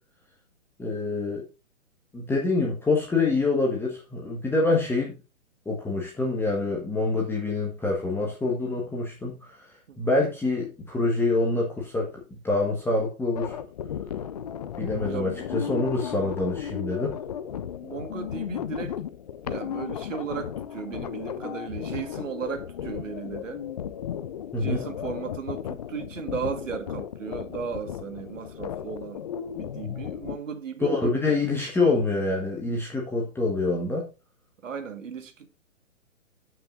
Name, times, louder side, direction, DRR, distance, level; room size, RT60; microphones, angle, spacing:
voice 1, 0.8-1.4 2.1-5.2 5.6-9.6 10.0-12.1 12.4-13.6 14.8-17.1 24.5-24.8 30.8-34.1, left 3 dB, 5° left, 1.4 m, -26 dB
sound 1, 13.3-30.4, left 9 dB, 30° left, 0.4 m, -35 dB
voice 2, 15.1-15.5 17.8-19.0 19.4-23.6 24.6-29.2 29.5-31.4 34.6-35.5, right 6 dB, 65° right, 1.8 m, -36 dB
13.5 x 6.1 x 2.6 m
hypercardioid pair, 130°, 41 cm